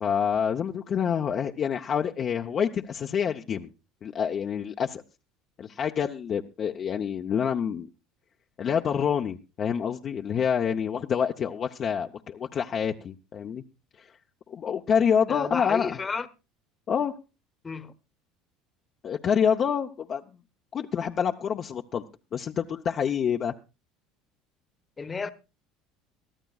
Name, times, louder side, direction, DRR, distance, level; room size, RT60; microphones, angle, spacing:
voice 1, 0.0-3.7 4.0-5.0 5.6-7.9 8.6-13.6 14.0-14.1 14.5-16.0 16.9-17.1 19.0-20.2 20.7-22.1 22.3-23.5, left 7 dB, 40° left, 0.7 m, -27 dB
voice 2, 15.3-16.3 17.6-17.9 25.0-25.3, left 4 dB, 25° left, 1.0 m, -32 dB
22.5 x 14.0 x 2.4 m
supercardioid pair, 105°, 0 cm